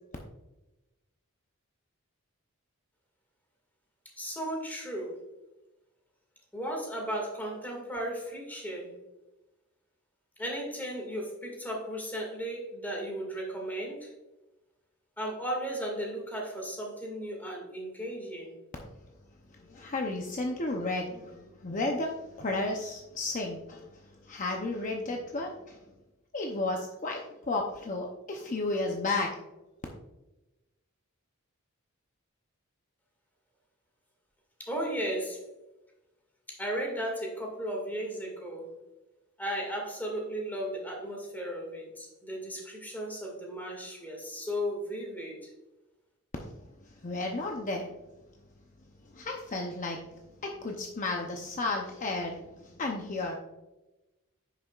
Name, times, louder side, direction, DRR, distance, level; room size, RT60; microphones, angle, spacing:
voice 1, 4.2-5.2 6.5-8.9 10.4-14.1 15.2-18.5 34.6-35.4 36.5-38.7 39.4-45.5, equal, 10° left, 0 dB, 2.0 m, -35 dB
voice 2, 19.7-25.8 26.3-29.3 46.4-46.5 47.0-47.9 49.1-50.0 50.4-53.4, left 2 dB, 35° left, 1 dB, 0.7 m, -33 dB
9.8 x 6.7 x 2.4 m, 1.0 s
head